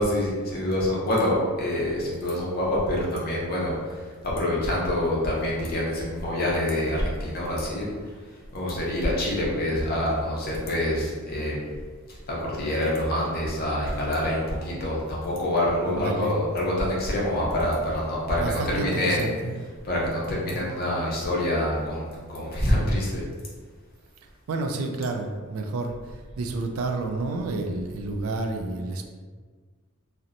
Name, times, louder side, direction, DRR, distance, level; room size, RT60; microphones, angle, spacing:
voice 1, 0.0-7.9 8.5-11.7 12.1-19.3 19.8-23.2, left 1 dB, 40° left, -5 dB, 0.6 m, -26 dB
voice 2, 15.9-16.4 18.4-19.5 20.5-20.8 24.5-29.1, right 3 dB, 70° right, 4 dB, 0.3 m, -30 dB
2.8 x 2.1 x 2.5 m, 1.5 s
head